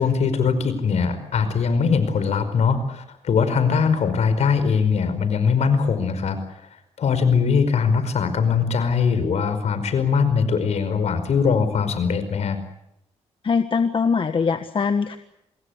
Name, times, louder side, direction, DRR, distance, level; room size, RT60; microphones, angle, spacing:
voice 1, 0.0-6.4 7.0-12.6, left 5 dB, 70° left, 11 dB, 5.2 m, -21 dB
voice 2, 13.4-15.2, left 5 dB, 45° left, 9 dB, 1.5 m, -22 dB
27.0 x 21.5 x 8.2 m, 0.81 s
cardioid pair, 75°, 12 cm